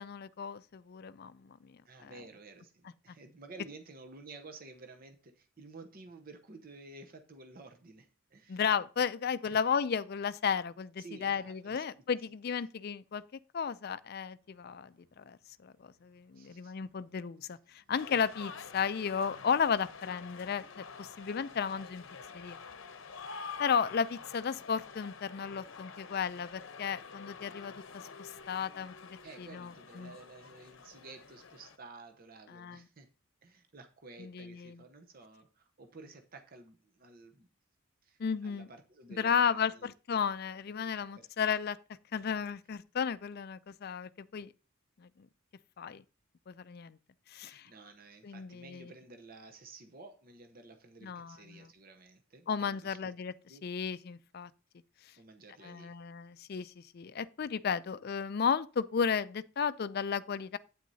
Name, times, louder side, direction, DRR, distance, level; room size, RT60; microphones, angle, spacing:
voice 1, 0.0-2.1 3.1-3.2 8.5-13.2 13.5-22.0 22.3-22.6 23.6-28.9 29.4-30.2 32.5-32.8 34.2-34.8 38.2-38.7 39.1-41.8 42.1-44.5 45.0-45.3 45.8-46.0 46.5-47.0 47.3-47.7 48.2-48.9 51.0-51.7 52.5-53.3 53.6-54.5 55.0-55.1 55.6-60.6, left 6 dB, 45° left, 0.4 m, -34 dB
voice 2, 1.9-8.6 9.4-9.6 11.0-11.8 16.3-16.7 29.2-33.1 33.4-37.5 38.0-39.9 41.2-41.3 47.4-53.1 53.5-53.7 55.2-55.9, right 3 dB, 45° right, 0.8 m, -52 dB
sound 1, 14.4-29.9, right 2 dB, 75° right, 3.1 m, -70 dB
sound 2, 17.9-31.8, left 5 dB, 65° left, 0.8 m, -48 dB
9.2 x 8.7 x 2.7 m
head